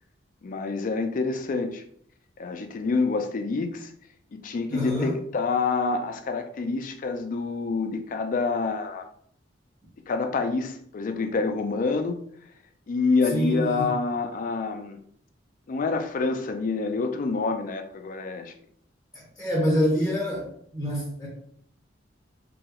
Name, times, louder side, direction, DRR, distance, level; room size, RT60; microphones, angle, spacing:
voice 1, 0.4-1.8 2.4-3.9 4.3-9.1 10.1-12.2 12.9-15.0 15.7-18.5, left 4 dB, 45° left, 6 dB, 0.3 m, -27 dB
voice 2, 4.7-5.2 13.3-13.9 19.1-21.3, equal, 10° left, -6 dB, 0.7 m, -26 dB
2.9 x 2.3 x 2.9 m, 0.63 s
head